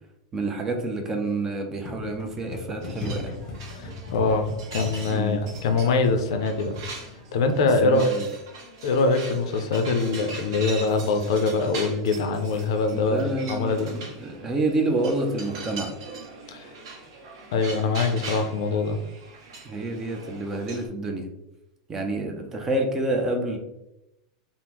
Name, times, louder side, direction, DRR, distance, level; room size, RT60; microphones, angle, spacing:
voice 1, 0.3-3.4 5.1-5.4 7.8-8.3 12.9-16.0 19.7-21.3 21.9-23.6, right 2 dB, 15° right, 3 dB, 0.4 m, -28 dB
sound 1, 1.8-7.6, left 3 dB, 25° left, 0.7 m, -38 dB
sound 2, 2.8-20.9, right 3 dB, 60° right, 0.7 m, -41 dB
voice 2, 3.8-6.7 7.3-8.2 8.8-13.9 16.5-16.7 17.5-19.0, left 3 dB, 65° left, 6 dB, 0.4 m, -23 dB
3.5 x 2.0 x 2.9 m, 0.89 s
supercardioid pair, 170°, 3 cm